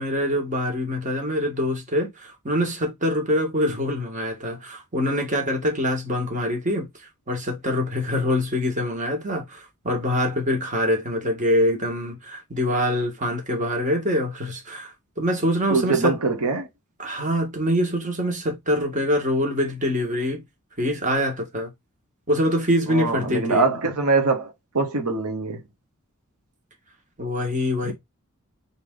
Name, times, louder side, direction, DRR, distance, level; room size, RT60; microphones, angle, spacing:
voice 1, 0.0-6.9 7.3-16.2 17.0-20.4 20.8-21.7 22.3-23.7 27.2-27.9, equal, 35° right, 1.7 m, -24 dB
voice 2, 15.7-16.7 22.9-25.6 27.8-27.9, right 3 dB, 80° right, 1.1 m, -23 dB
4.0 x 3.5 x 3.8 m
head